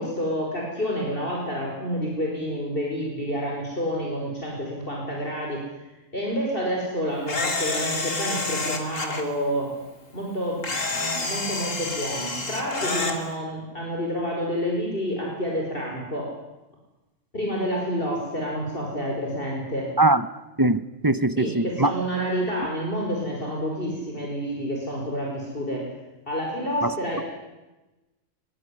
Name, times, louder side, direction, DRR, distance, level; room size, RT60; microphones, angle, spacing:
voice 1, 0.0-5.7 6.1-9.7 10.1-16.3 17.3-19.9 21.4-25.9 26.3-27.2, equal, 45° left, -1 dB, 5.5 m, -29 dB
Camera, 7.3-9.2 10.6-13.2, left 3 dB, 85° left, 3.3 m, -28 dB
voice 2, 20.6-21.9 26.8-27.2, right 2 dB, 20° right, 14 dB, 0.8 m, -22 dB
22.5 x 21.5 x 10.0 m, 1.1 s
omnidirectional pair, 1.3 m